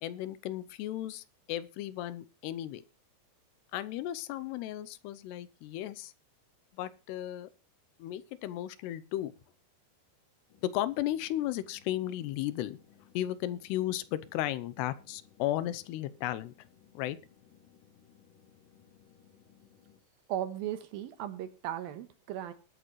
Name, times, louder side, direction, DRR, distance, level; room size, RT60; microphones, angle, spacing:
voice 1, 0.0-2.8 3.7-6.1 6.7-7.5 8.0-9.3 10.6-12.8 13.1-16.5 16.9-17.2, left 13 dB, 85° left, 2.9 m, -35 dB
sound 1, 10.5-20.0, left 8 dB, 60° left, 3.5 m, -62 dB
voice 2, 20.3-22.5, right 11 dB, 75° right, 2.7 m, -36 dB
21.5 x 8.6 x 3.1 m
omnidirectional pair, 4.7 m